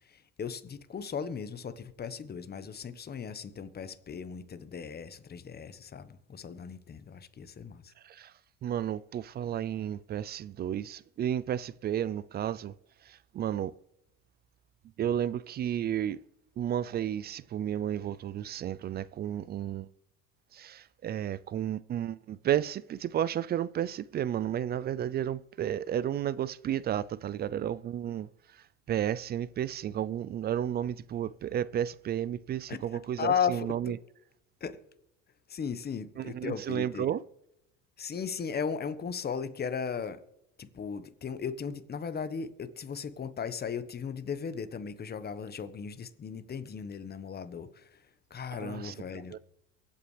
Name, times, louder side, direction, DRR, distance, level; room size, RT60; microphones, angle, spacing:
voice 1, 0.0-7.9 32.7-32.8 33.2-34.0 34.6-34.8 35.5-37.1 38.0-40.2 40.6-48.0 48.3-49.4, left 6 dB, 25° left, 1.2 m, -36 dB
voice 2, 8.6-12.7 13.0-13.7 15.0-16.2 16.6-19.9 20.5-34.0 36.2-37.2 48.5-48.9 49.3-49.4, right 10 dB, 30° right, 0.3 m, -32 dB
23.5 x 8.5 x 3.3 m
supercardioid pair, 90°, 37 cm